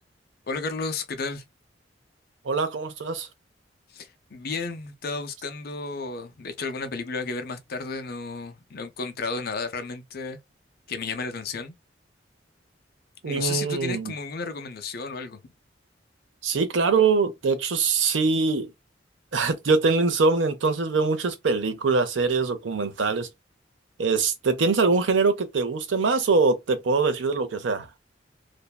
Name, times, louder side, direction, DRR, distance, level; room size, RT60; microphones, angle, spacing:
voice 1, 0.5-1.5 3.9-10.4 10.9-11.7 13.2-15.4, left 4 dB, 55° left, 0.6 m, -33 dB
voice 2, 2.4-3.3 13.2-14.1 16.4-18.7 19.3-23.3 24.0-27.9, right 4 dB, 90° right, 0.6 m, -23 dB
2.6 x 2.2 x 2.2 m
head